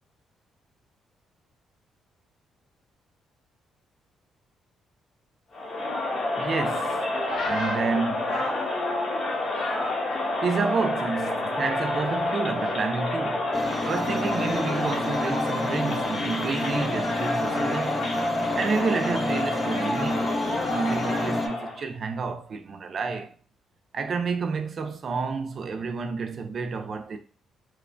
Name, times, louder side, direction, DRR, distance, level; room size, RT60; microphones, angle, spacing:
Crowd, 5.5-21.8, left 2 dB, 55° left, 0.9 m, -28 dB
voice 1, 6.4-7.1 7.4-8.4 10.4-13.5 13.8-18.1 18.6-20.3 20.7-23.4 23.9-27.2, right 4 dB, 50° right, 0.4 m, -29 dB
sound 1, 7.1-11.0 11.3-12.2 12.5-15.2 16.1-16.4, left 2 dB, 80° left, 0.9 m, -38 dB
sound 2, 13.5-21.5, left 1 dB, 25° left, 0.4 m, -31 dB
2.9 x 2.1 x 2.5 m
cardioid pair, 90°, 0 cm